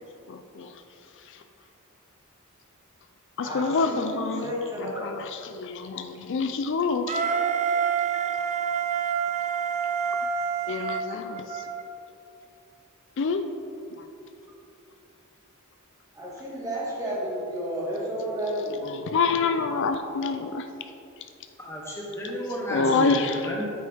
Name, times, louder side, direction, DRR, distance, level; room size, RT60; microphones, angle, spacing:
voice 1, 0.3-0.7 1.3-1.4 3.4-4.5 4.8-7.2 10.7-11.6 13.2-13.4 14.0-14.1 18.8-20.7 22.7-23.4, left 4 dB, 60° left, 7 dB, 0.4 m, -27 dB
voice 2, 3.4-5.1 16.1-18.9, equal, 15° right, -5 dB, 1.9 m, -32 dB
Wind instrument woodwind instrument, 7.1-11.8, right 7 dB, 35° right, 0.5 m, -27 dB
voice 3, 21.6-23.6, equal, 15° left, -3 dB, 0.9 m, -32 dB
9.2 x 7.9 x 3.5 m, 2.7 s
head